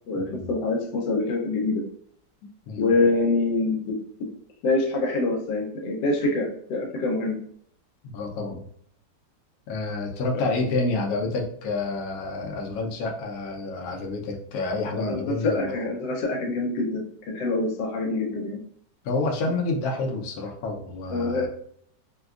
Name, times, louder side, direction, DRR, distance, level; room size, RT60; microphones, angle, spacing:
voice 1, 0.1-1.8 2.8-4.3 4.6-7.4 14.9-18.6 21.1-21.5, left 2 dB, 85° left, 1 dB, 1.3 m, -25 dB
voice 2, 8.0-8.7 9.7-15.7 19.0-21.5, left 3 dB, 65° left, 0 dB, 1.0 m, -28 dB
4.1 x 2.2 x 2.4 m, 0.64 s
omnidirectional pair, 1.8 m